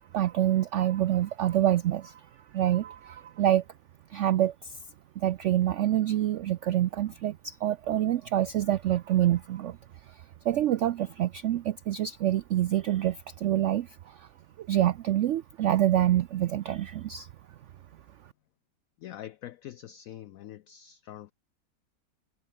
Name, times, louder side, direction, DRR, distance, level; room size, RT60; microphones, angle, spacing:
voice 1, 0.1-2.3 2.5-3.6 4.1-4.8 5.2-9.8 10.1-14.3 14.6-17.3, right 12 dB, 85° right, 0.6 m, -26 dB
voice 2, 19.0-21.3, left 12 dB, 70° left, 0.9 m, -44 dB
omnidirectional pair, 1.8 m